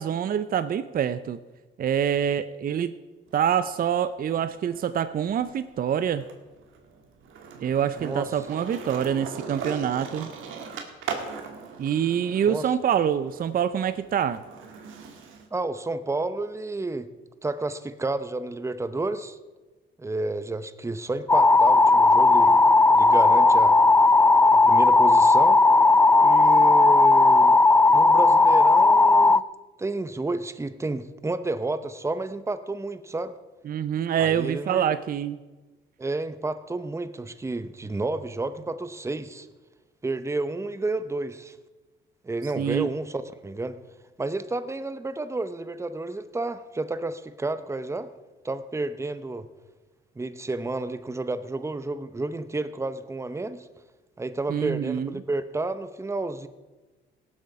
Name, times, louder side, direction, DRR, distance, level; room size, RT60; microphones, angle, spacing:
voice 1, 0.0-1.4 1.8-2.9 3.3-6.2 7.6-10.3 11.8-14.4 33.6-35.4 42.4-42.9 54.5-55.1, right 9 dB, 45° right, 13 dB, 0.5 m, -26 dB
Skateboard, 3.3-4.9 5.2-15.5, right 5 dB, 85° right, 1.7 m, -40 dB
voice 2, 15.5-17.1 17.4-19.4 20.0-22.6 22.9-23.8 24.5-25.6 26.2-27.6 27.9-29.4 29.8-33.3 34.2-34.9 36.0-39.5 40.0-41.6 42.2-43.8 44.2-48.1 48.4-49.5 50.2-53.7 54.2-56.5, right 2 dB, 15° right, 12 dB, 0.8 m, -31 dB
sound 1, 21.3-29.4, left 3 dB, 10° left, 0.3 m, -16 dB
18.0 x 7.9 x 4.8 m, 1.2 s
cardioid pair, 90°, 20 cm